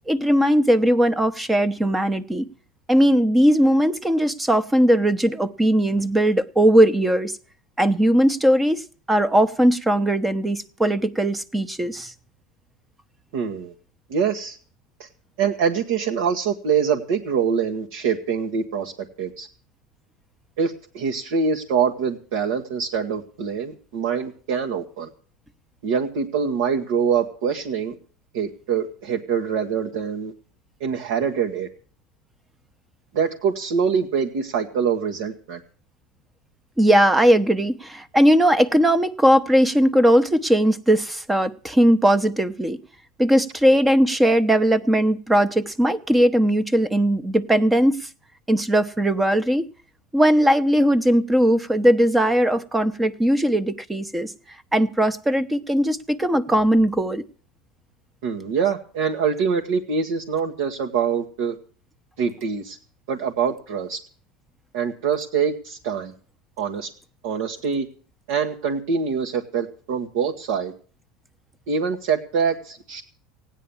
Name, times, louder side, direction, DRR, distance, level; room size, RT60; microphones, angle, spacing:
voice 1, 0.1-2.5 2.9-7.3 7.8-12.1 36.8-42.8 43.2-48.1 48.5-49.6 50.1-54.3 54.7-57.2, equal, 10° right, 0.9 m, -19 dB
voice 2, 13.3-13.7 14.1-14.6 15.4-18.9 19.2-19.5 20.6-25.1 25.8-27.9 28.3-30.3 30.8-31.7 33.1-35.6 58.2-61.6 62.2-62.8 63.1-64.0 64.7-66.1 66.6-66.9 67.2-67.9 68.3-70.7 71.7-73.0, right 6 dB, 75° right, 1.5 m, -24 dB
16.0 x 9.9 x 7.1 m
supercardioid pair, 110°, 0 cm